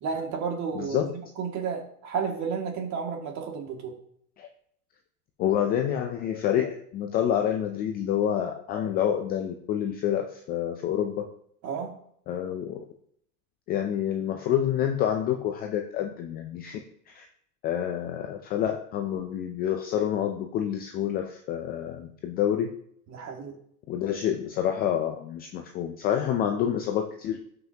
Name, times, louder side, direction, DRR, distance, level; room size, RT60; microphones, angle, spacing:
voice 1, 0.0-1.1 1.4-3.9 11.6-11.9 23.1-23.6, right 6 dB, 35° right, 2 dB, 2.2 m, -32 dB
voice 2, 0.8-1.1 4.4-4.5 5.4-11.3 12.3-12.9 13.7-16.8 17.1-17.3 17.6-22.7 23.9-27.4, left 10 dB, 20° left, 5 dB, 0.4 m, -28 dB
12.5 x 5.9 x 2.8 m, 0.66 s
hypercardioid pair, 125°, 47 cm